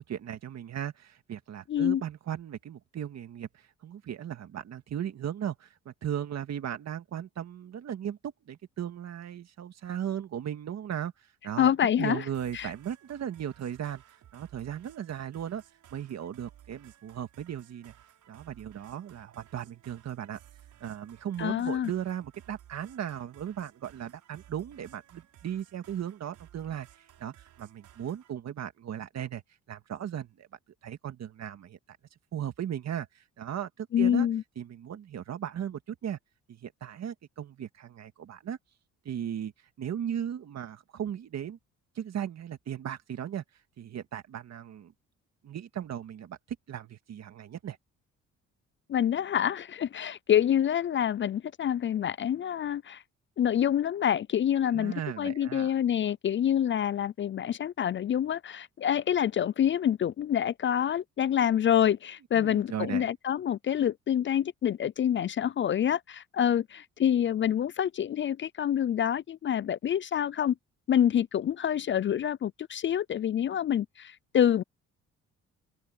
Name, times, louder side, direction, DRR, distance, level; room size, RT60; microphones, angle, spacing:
voice 1, 0.0-11.1 11.4-14.0 14.3-15.6 15.9-17.9 18.3-20.4 20.8-26.9 27.2-29.4 29.7-30.5 30.8-31.8 32.3-34.3 34.6-36.2 36.5-38.6 39.1-39.5 39.8-41.6 42.0-43.4 43.8-44.9 45.4-46.4 46.7-47.8 54.6-55.7 62.4-63.1, right 9 dB, 60° right, 2.0 m, -37 dB
voice 2, 1.7-2.0 11.6-12.2 12.5-12.7 21.4-21.9 33.9-34.4 48.9-53.0 53.4-70.6 70.9-74.6, left 9 dB, 40° left, 0.4 m, -27 dB
sound 1, 12.3-28.3, right 11 dB, 75° right, 5.4 m, -57 dB
open air
cardioid pair, 90°, 30 cm